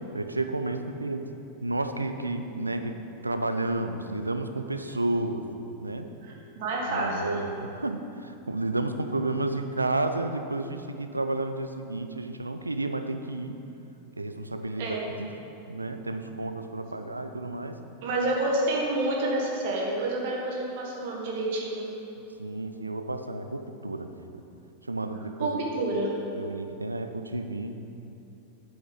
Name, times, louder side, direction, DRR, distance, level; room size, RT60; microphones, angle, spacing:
voice 1, 0.1-1.3 1.6-3.0 3.2-5.4 5.8-6.1 6.9-13.6 14.2-15.3 15.7-17.8 22.4-24.4 24.8-25.6 26.3-27.8, right 2 dB, 80° right, 8 dB, 0.5 m, -31 dB
voice 2, 6.2-7.4 14.8-15.0 16.9-17.0 18.0-21.9 25.4-26.1, right 2 dB, 50° right, -2 dB, 1.6 m, -29 dB
8.6 x 7.1 x 5.3 m, 2.9 s
figure-of-eight pair, 90°, 0 cm